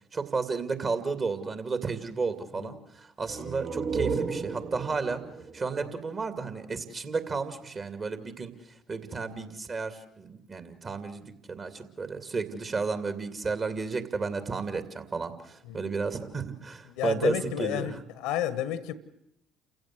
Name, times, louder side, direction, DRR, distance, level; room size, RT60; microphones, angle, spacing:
voice 1, 0.1-5.2 5.5-8.5 8.9-18.0, right 4 dB, 35° right, 2.6 m, -32 dB
sound 1, 3.2-6.8, right 5 dB, 55° right, 2.6 m, -34 dB
voice 2, 16.9-18.9, left 11 dB, 70° left, 1.3 m, -32 dB
29.0 x 16.0 x 7.9 m
figure-of-eight pair, 55°, 0 cm